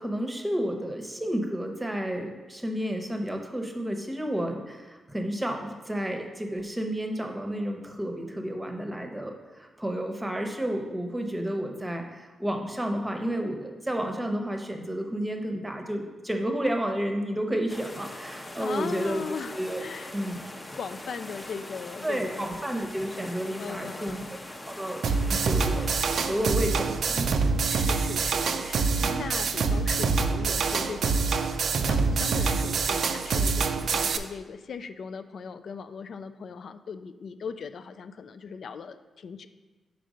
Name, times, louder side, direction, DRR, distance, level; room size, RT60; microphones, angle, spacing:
voice 1, 0.0-19.2 19.5-19.8 20.1-20.4 22.0-24.2 24.6-25.0 25.3-25.9 26.2-27.3 29.0-29.3, equal, 15° right, 3 dB, 0.8 m, -31 dB
sound 1, 17.7-26.5, left 1 dB, 25° left, 0.6 m, -42 dB
voice 2, 18.5-20.1 20.8-22.5 23.6-24.3 27.7-39.5, left 6 dB, 70° left, 11 dB, 0.3 m, -39 dB
sound 2, 25.0-34.2, right 4 dB, 70° right, 0.3 m, -26 dB
5.1 x 4.5 x 5.0 m, 1.3 s
cardioid pair, 75°, 0 cm